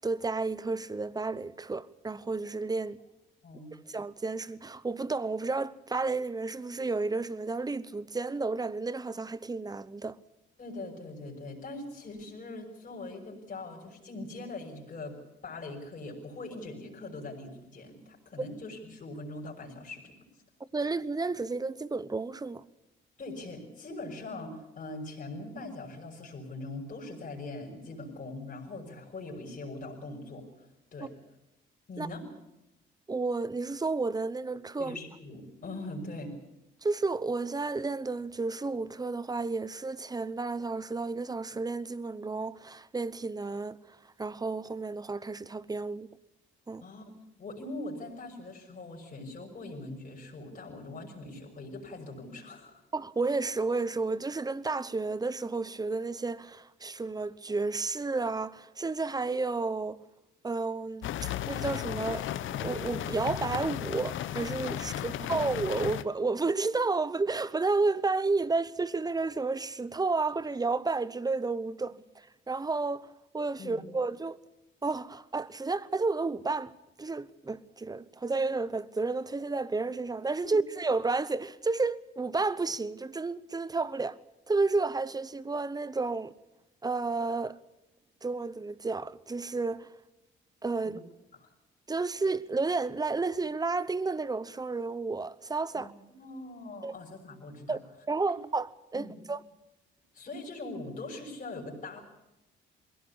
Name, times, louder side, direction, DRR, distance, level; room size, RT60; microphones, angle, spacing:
voice 1, 0.0-3.0 3.9-10.2 20.7-22.6 32.0-32.1 33.1-35.0 36.8-46.1 46.7-46.9 52.9-60.0 60.4-62.3 62.6-73.1 73.3-74.4 74.8-84.2 84.5-86.3 86.8-87.6 88.2-89.9 90.6-91.0 91.9-95.9 96.8-96.9 97.7-99.4, right 3 dB, 20° right, 0.9 m, -31 dB
voice 2, 3.4-3.7 10.6-15.2 15.4-20.1 23.2-31.1 31.9-32.3 34.8-36.3 46.8-47.0 47.4-52.8 64.9-65.5 73.6-73.8 90.8-91.0 91.4-91.5 95.8-95.9 96.1-97.8 98.9-99.2 100.1-102.0, left 2 dB, 40° left, 6.3 m, -42 dB
sound 1, 61.0-66.0, left 11 dB, 75° left, 1.0 m, -35 dB
21.5 x 17.0 x 8.5 m
cardioid pair, 90°, 20 cm